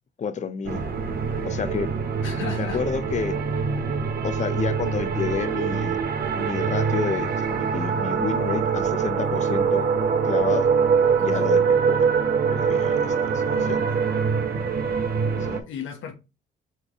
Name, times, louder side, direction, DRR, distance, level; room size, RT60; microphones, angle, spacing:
voice 1, 0.2-0.8 1.4-1.9 2.6-3.3 4.2-6.0 6.3-9.9 10.2-10.7 11.2-12.1 12.5-13.8 15.5-15.6, left 6 dB, 35° left, 0.6 m, -30 dB
sound 1, 0.7-15.6, right 6 dB, 50° right, 0.8 m, -24 dB
voice 2, 2.2-2.8 3.8-4.1 11.3-11.5 13.5-13.9 15.3-16.1, left 8 dB, 80° left, 0.9 m, -37 dB
4.1 x 3.2 x 3.5 m
cardioid pair, 90°, 20 cm